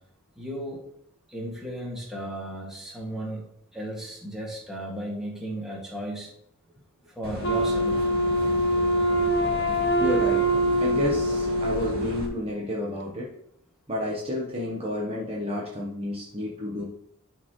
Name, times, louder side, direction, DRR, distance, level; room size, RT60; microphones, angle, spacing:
voice 1, 0.4-0.8 1.3-6.3 7.1-8.1, right 1 dB, ahead, -5 dB, 2.1 m, -35 dB
sound 1, 7.2-12.3, right 1 dB, 45° right, 2.0 m, -36 dB
Wind instrument woodwind instrument, 7.4-12.4, equal, 50° left, 0.8 m, -24 dB
voice 2, 10.0-10.5 10.8-13.3 13.9-16.8, left 1 dB, 25° right, -4 dB, 1.1 m, -30 dB
12.5 x 4.4 x 3.2 m, 0.71 s
head